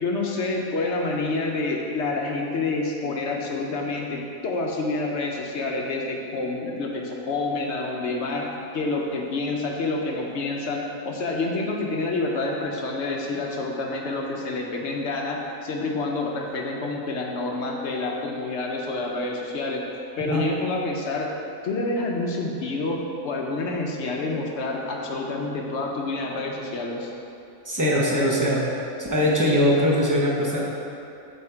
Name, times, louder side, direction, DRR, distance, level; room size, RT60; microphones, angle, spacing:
voice 1, 0.0-8.5 8.7-19.9 20.2-21.3 21.6-27.1, left 2 dB, 60° left, 0 dB, 0.8 m, -28 dB
voice 2, 27.7-28.7 29.0-30.6, equal, 20° right, -4 dB, 0.5 m, -21 dB
7.3 x 3.5 x 4.4 m, 2.8 s
omnidirectional pair, 1.4 m